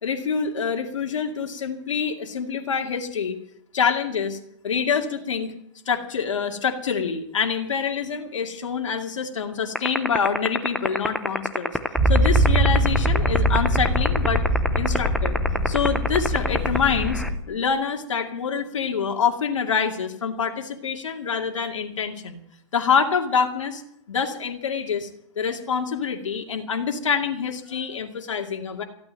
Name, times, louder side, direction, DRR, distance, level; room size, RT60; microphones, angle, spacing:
voice 1, 0.0-3.4 3.7-4.4 4.6-5.5 5.9-11.8 12.1-14.4 14.8-15.4 15.7-22.4 22.7-23.8 24.1-25.1 25.4-28.8, left 6 dB, 90° left, 3 dB, 2.3 m, -26 dB
sound 1, 9.8-17.3, left 1 dB, ahead, 0.6 m, -22 dB
Motor vehicle (road), 12.0-17.3, right 1 dB, 15° right, 5.2 m, -22 dB
15.0 x 8.9 x 8.9 m, 0.73 s
hypercardioid pair, 160°, 16 cm